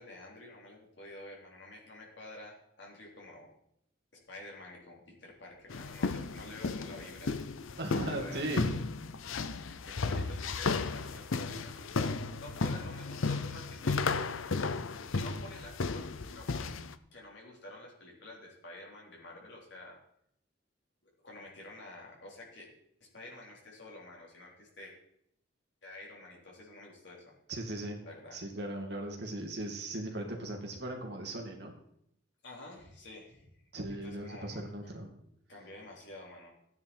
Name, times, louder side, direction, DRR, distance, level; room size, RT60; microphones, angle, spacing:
voice 1, 0.0-3.5 4.1-7.3 8.0-8.6 9.8-14.3 15.1-16.7 17.1-20.0 21.2-22.7 23.0-24.9 25.8-27.3 28.0-28.4 32.4-33.6 34.0-34.6 35.5-36.5, left 1 dB, 60° left, -3 dB, 4.0 m, -49 dB
sound 1, 5.7-16.9, left 4 dB, 85° left, 0.7 m, -34 dB
voice 2, 7.8-8.8 27.5-28.0 28.3-31.7 33.7-35.1, right 1 dB, 55° right, 1 dB, 2.3 m, -38 dB
14.5 x 9.6 x 4.5 m, 0.73 s
head